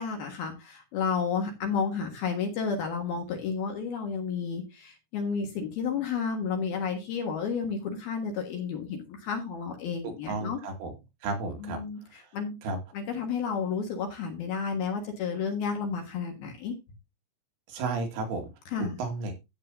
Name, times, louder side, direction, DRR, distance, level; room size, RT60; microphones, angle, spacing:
voice 1, 0.0-10.6 11.6-12.6 12.9-16.8 18.7-19.0, left 6 dB, 60° left, 3 dB, 3.0 m, -31 dB
voice 2, 10.0-10.9 11.2-11.8 12.6-12.8 17.7-18.5 19.0-19.4, right 3 dB, 80° right, 3 dB, 4.5 m, -32 dB
13.5 x 8.7 x 2.7 m, 0.24 s
omnidirectional pair, 5.8 m